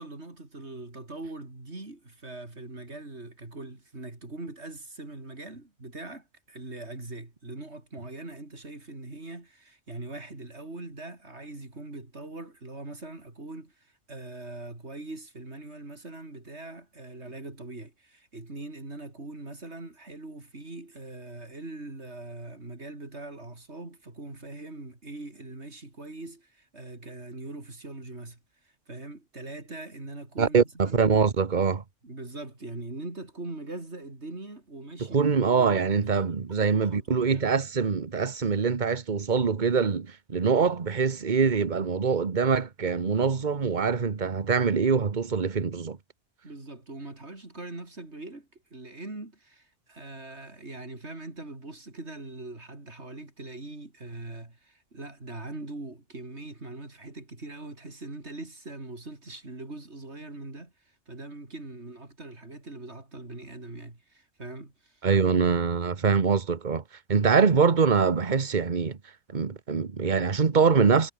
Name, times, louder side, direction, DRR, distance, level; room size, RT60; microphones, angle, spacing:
voice 1, 0.0-31.1 32.0-35.2 35.5-37.5 46.4-65.1, right 2 dB, 65° right, 4.8 m, -42 dB
voice 2, 30.4-31.8 35.1-46.0 65.0-66.8 67.1-69.0 69.3-71.1, right 5 dB, 40° right, 1.4 m, -24 dB
omnidirectional pair, 1.2 m